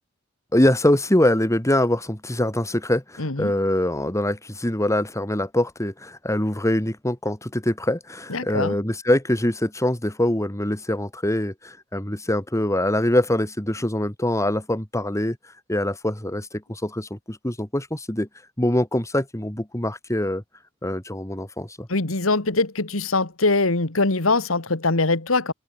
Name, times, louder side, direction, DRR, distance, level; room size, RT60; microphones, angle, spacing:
voice 1, 0.5-15.4 15.7-18.3 18.6-20.4 20.8-21.9, left 1 dB, 15° left, 2.4 m, -23 dB
voice 2, 3.2-3.5 8.3-8.7 21.9-25.5, left 3 dB, 75° left, 2.1 m, -22 dB
head